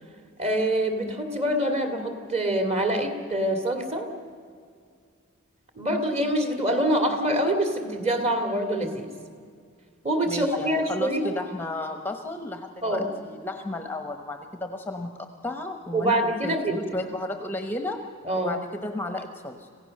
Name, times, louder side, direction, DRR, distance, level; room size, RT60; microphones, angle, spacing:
voice 1, 0.4-4.1 5.7-9.1 10.0-11.3 12.8-13.1 15.9-16.8 18.3-18.5, right 1 dB, 30° right, 5 dB, 2.6 m, -25 dB
voice 2, 10.3-18.0 18.3-19.7, left 2 dB, 10° left, 6 dB, 1.0 m, -34 dB
27.0 x 16.0 x 6.6 m, 2.2 s
head